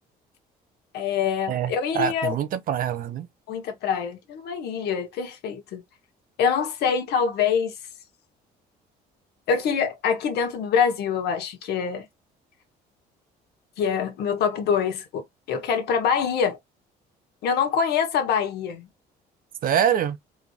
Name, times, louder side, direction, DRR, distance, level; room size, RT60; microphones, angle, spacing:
voice 1, 0.9-2.3 3.5-5.8 6.4-7.7 9.5-12.0 13.8-16.6 17.4-18.9, left 7 dB, 75° left, 1.5 m, -25 dB
voice 2, 1.5-3.3 19.6-20.2, right 9 dB, 55° right, 0.9 m, -25 dB
4.2 x 3.1 x 2.9 m
cardioid pair, 110°, 17 cm